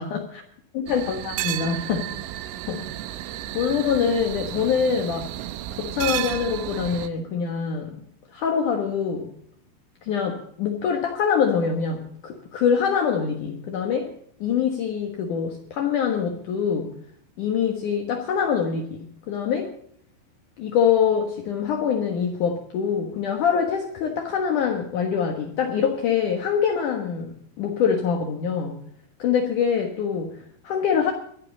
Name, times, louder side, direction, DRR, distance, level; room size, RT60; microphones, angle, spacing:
voice 1, 0.0-0.4 0.7-2.1 2.7-2.9 3.5-5.4 5.7-8.0 8.3-9.3 10.0-14.1 14.4-16.9 17.4-19.7 20.6-28.8 29.2-31.1, left 7 dB, 65° left, 3 dB, 2.1 m, -24 dB
sound 1, 0.9-7.1, right 14 dB, 80° right, 3.2 m, -32 dB
22.5 x 13.0 x 4.0 m, 0.66 s
omnidirectional pair, 5.7 m